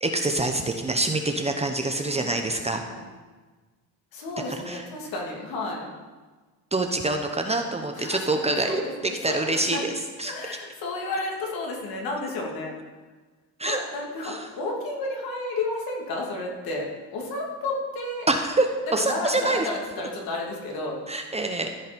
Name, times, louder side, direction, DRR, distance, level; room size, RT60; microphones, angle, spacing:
voice 1, 0.0-2.8 4.7-4.8 6.7-9.9 10.2-10.3 13.6-13.8 14.2-14.4 18.3-18.7 18.9-19.7 21.1-21.7, right 2 dB, 15° right, 4 dB, 0.8 m, -25 dB
voice 2, 1.9-2.4 2.9-3.1 4.1-5.9 7.9-9.8 10.2-12.7 13.6-16.8 17.1-18.3 19.0-21.0, left 2 dB, 65° left, -1 dB, 2.7 m, -32 dB
14.0 x 5.6 x 5.2 m, 1.3 s
cardioid pair, 120°, 39 cm